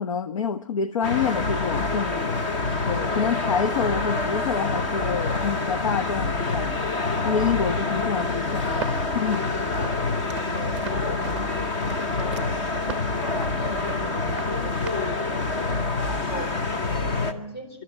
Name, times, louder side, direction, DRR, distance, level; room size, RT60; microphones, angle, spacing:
voice 1, 0.0-2.4 2.9-7.0 7.2-8.8 9.1-9.5, left 6 dB, 70° left, 10 dB, 0.9 m, -27 dB
sound 1, 1.0-17.3, left 3 dB, 20° left, 0.8 m, -26 dB
Walk footsteps, 8.7-15.1, right 5 dB, 5° right, 0.9 m, -38 dB
voice 2, 9.8-11.5 12.0-12.7 13.1-15.3 15.6-17.8, left 1 dB, 50° left, 7 dB, 4.1 m, -39 dB
29.0 x 12.5 x 7.8 m, 0.92 s
hypercardioid pair, 165°, 17 cm